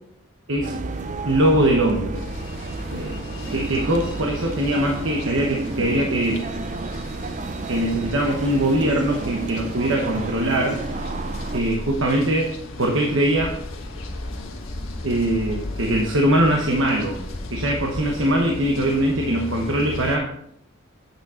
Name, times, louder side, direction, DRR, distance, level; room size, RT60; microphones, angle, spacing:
sound 1, 0.5-20.2, left 1 dB, 35° left, 0.8 m, -37 dB
voice 1, 0.5-0.8 1.2-2.2 2.9-3.2 3.5-6.4 7.7-10.8 11.5-12.5 12.8-13.6 15.0-17.2 17.5-20.3, right 1 dB, 70° right, 0 dB, 1.0 m, -21 dB
sound 2, 0.6-11.6, right 3 dB, 35° right, 0.4 m, -31 dB
sound 3, 2.1-20.2, left 2 dB, 75° left, 1.5 m, -40 dB
8.6 x 6.2 x 4.3 m, 0.72 s
head